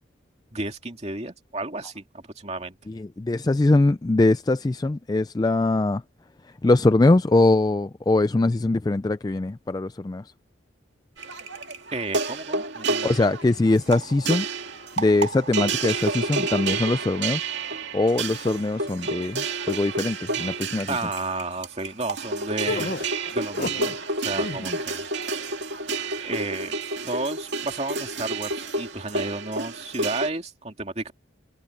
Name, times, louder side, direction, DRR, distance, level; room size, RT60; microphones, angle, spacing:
voice 1, 0.5-2.7 11.9-13.3 20.9-23.0 23.3-23.9 24.2-25.1 26.2-26.8 27.1-31.1, right 2 dB, 35° right, 2.5 m, -32 dB
voice 2, 2.9-6.0 6.6-10.2 13.0-14.5 15.0-17.4 17.9-20.9, left 2 dB, 20° left, 0.3 m, -22 dB
sound 1, 11.2-30.3, right 3 dB, 65° right, 2.3 m, -30 dB
sound 2, 22.7-24.0 24.3-24.8, left 2 dB, 45° left, 0.7 m, -31 dB
head